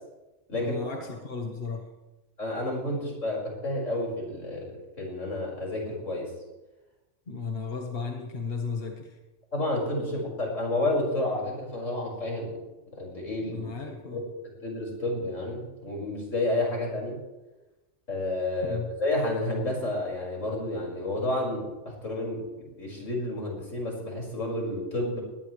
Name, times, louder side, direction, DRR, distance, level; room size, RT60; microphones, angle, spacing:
voice 1, 0.5-1.9 7.3-9.2 10.0-10.1 13.4-14.2 18.6-18.9, left 5 dB, 50° left, 1 dB, 1.8 m, -35 dB
voice 2, 2.4-6.3 9.5-12.6 12.9-13.7 14.1-14.3 14.6-17.2 18.1-25.2, left 1 dB, 85° left, -3 dB, 6.1 m, -30 dB
21.0 x 19.0 x 3.3 m, 1.1 s
omnidirectional pair, 1.3 m